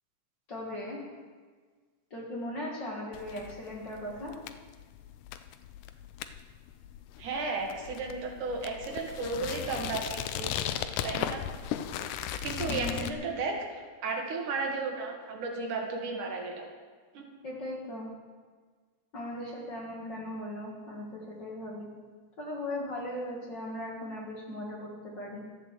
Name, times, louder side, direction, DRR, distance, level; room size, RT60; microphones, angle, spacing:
voice 1, 0.5-1.0 2.1-4.3 12.7-13.1 17.4-18.1 19.1-21.9 22.4-25.4, left 1 dB, 40° left, -3 dB, 1.9 m, -38 dB
sound 1, 3.1-13.1, left 10 dB, 80° left, 2.0 m, -37 dB
voice 2, 7.2-10.8 11.0-11.4 12.4-16.6 17.1-17.3, right 3 dB, 70° right, 1 dB, 3.0 m, -34 dB
12.0 x 7.9 x 7.5 m, 1.5 s
omnidirectional pair, 3.8 m